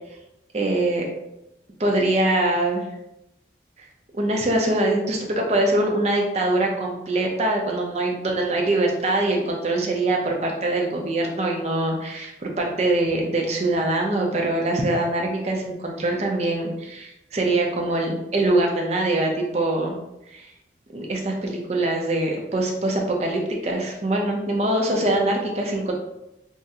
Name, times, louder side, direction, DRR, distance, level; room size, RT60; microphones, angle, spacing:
voice 1, 0.5-1.1 1.8-2.8 4.1-19.9 20.3-20.5 20.9-25.9, right 2 dB, 35° right, 0 dB, 0.5 m, -23 dB
3.6 x 2.1 x 2.7 m, 0.89 s
head